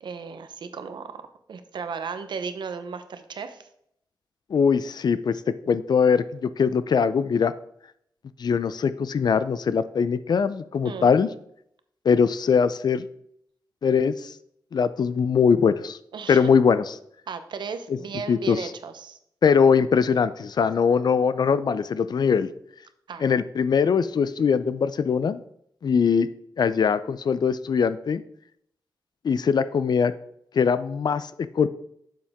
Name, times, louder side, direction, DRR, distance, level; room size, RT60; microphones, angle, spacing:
voice 1, 0.0-3.7 10.8-11.1 16.1-16.5 17.3-19.2 23.1-23.3, right 5 dB, 85° right, 10 dB, 0.8 m, -35 dB
voice 2, 4.5-5.4 5.7-7.5 8.4-11.3 12.0-13.0 13.8-14.3 14.7-16.0 16.3-16.8 18.3-18.7 19.4-22.5 23.2-25.4 25.8-26.3 26.6-28.2 29.2-30.1 30.5-31.7, left 6 dB, 65° left, 14 dB, 0.5 m, -21 dB
7.5 x 7.0 x 3.5 m, 0.70 s
cardioid pair, 80°, 8 cm